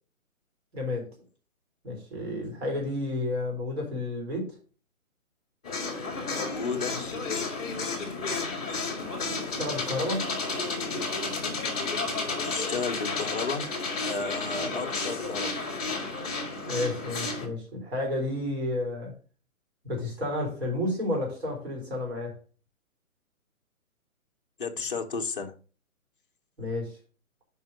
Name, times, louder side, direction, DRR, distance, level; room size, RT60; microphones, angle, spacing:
voice 1, 0.7-1.1 1.8-4.5 9.4-10.3 16.7-19.1 19.8-22.3 26.6-27.0, left 1 dB, 45° right, 4.1 m, -31 dB
sound 1, 5.6-17.5, left 3 dB, 5° left, 1.1 m, -32 dB
voice 2, 6.3-7.5 12.4-13.7 14.0-15.6 24.6-25.5, left 4 dB, 40° left, 0.8 m, -33 dB
5.6 x 5.2 x 6.4 m
hypercardioid pair, 175°, 43 cm